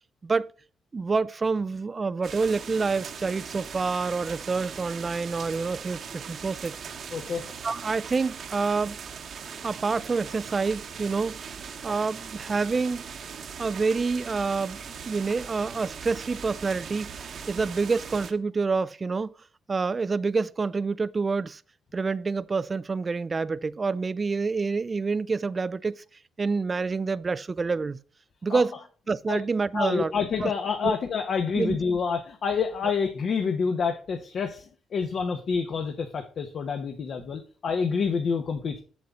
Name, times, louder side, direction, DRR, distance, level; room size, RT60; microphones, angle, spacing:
voice 1, 0.9-6.7 7.6-9.0 9.6-11.4 11.8-13.1 13.6-19.3 19.7-21.6 21.9-26.0 26.4-28.0 28.4-28.8 29.1-30.1 30.4-30.5 30.8-30.9 31.5-31.8, right 4 dB, 30° right, 0.4 m, -27 dB
sound 1, 2.2-18.3, right 6 dB, 60° right, 1.2 m, -40 dB
voice 2, 7.1-7.5 28.5-28.6 29.3-29.4 29.7-34.7 34.9-38.8, left 5 dB, 55° left, 1.1 m, -28 dB
7.7 x 7.0 x 3.7 m
cardioid pair, 90°, 0 cm